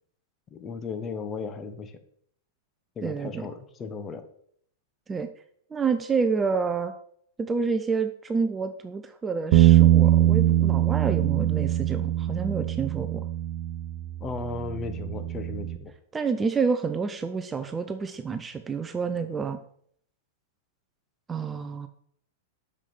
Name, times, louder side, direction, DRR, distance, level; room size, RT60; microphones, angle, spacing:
voice 1, 0.5-1.9 3.0-4.2 14.2-15.9, left 4 dB, 25° left, 9 dB, 1.1 m, -35 dB
voice 2, 3.0-3.5 5.1-5.3 5.7-6.9 7.4-13.2 16.1-19.6 21.3-21.9, right 5 dB, 15° right, 9 dB, 0.6 m, -28 dB
Bass guitar, 9.5-15.8, right 13 dB, 50° right, 0.9 m, -22 dB
6.7 x 6.1 x 5.9 m, 0.65 s
figure-of-eight pair, 100°, 0 cm